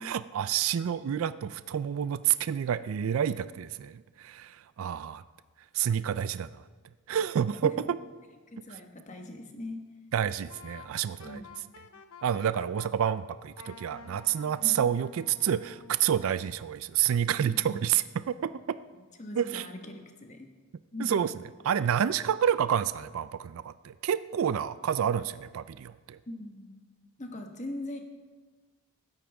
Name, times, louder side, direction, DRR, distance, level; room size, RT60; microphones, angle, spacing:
voice 1, 0.0-5.2 5.7-6.6 7.1-7.7 10.1-11.4 12.2-18.8 19.4-19.6 21.0-21.3 21.6-26.2, right 9 dB, 65° right, 14 dB, 0.3 m, -29 dB
voice 2, 8.5-9.8 11.2-11.5 14.6-14.9 17.4-17.8 19.2-20.5 20.9-21.1 26.3-26.8 27.2-28.0, left 2 dB, 30° left, 4 dB, 1.2 m, -40 dB
Wind instrument woodwind instrument, 10.5-13.2 13.6-16.0, left 4 dB, 80° left, 0.8 m, -50 dB
16.0 x 12.5 x 3.5 m, 1.4 s
head